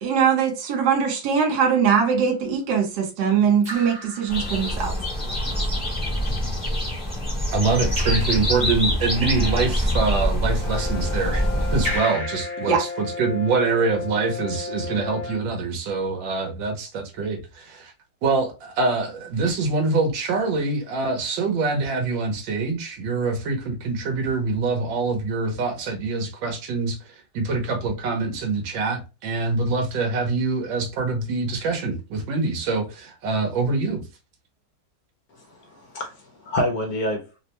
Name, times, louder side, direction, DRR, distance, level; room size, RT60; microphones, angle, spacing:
voice 1, 0.0-4.9 12.6-12.8, right 7 dB, 65° right, 1.2 m, -21 dB
Raindrop / Drip, 2.1-2.3 3.6-5.0 7.9-9.0 11.8-13.6, equal, 35° right, 1.0 m, -35 dB
sound 1, 4.3-12.0, equal, 5° right, 0.9 m, -25 dB
voice 2, 7.5-17.9 18.2-34.0, right 3 dB, 85° right, 1.6 m, -25 dB
Brass instrument, 10.6-15.5, left 4 dB, 35° left, 0.9 m, -34 dB
voice 3, 35.4-37.4, left 1 dB, 65° left, 1.0 m, -28 dB
3.4 x 2.1 x 2.8 m
omnidirectional pair, 2.0 m